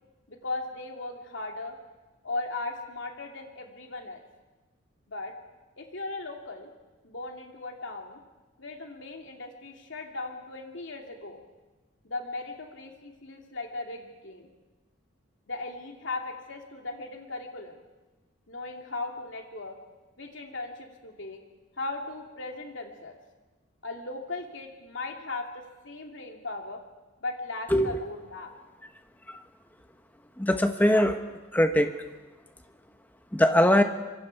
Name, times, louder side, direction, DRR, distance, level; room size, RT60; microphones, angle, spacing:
voice 1, 0.3-1.8 2.2-4.2 5.1-5.3 5.8-6.7 7.0-8.2 8.6-11.4 12.0-14.5 15.5-17.8 18.5-19.8 20.2-21.4 21.8-23.2 23.8-26.8 27.2-28.5, left 2 dB, 70° left, 2 dB, 2.6 m, -37 dB
voice 2, 30.4-31.2 31.5-31.9 33.3-33.8, left 1 dB, 10° left, 7 dB, 1.1 m, -21 dB
25.0 x 23.0 x 4.7 m, 1.2 s
head